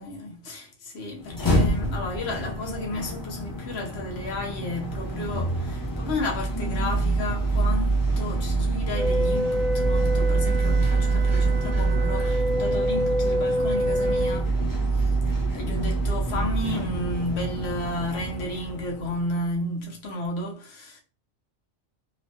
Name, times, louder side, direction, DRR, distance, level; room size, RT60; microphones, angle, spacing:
voice 1, 0.0-14.6 14.9-15.0 15.5-21.0, left 1 dB, 60° left, 0.9 m, -32 dB
sound 1, 1.2-19.3, right 2 dB, 25° left, 0.4 m, -26 dB
Wind instrument woodwind instrument, 8.9-14.4, equal, 85° right, 1.0 m, -27 dB
3.0 x 2.1 x 2.7 m
omnidirectional pair, 1.3 m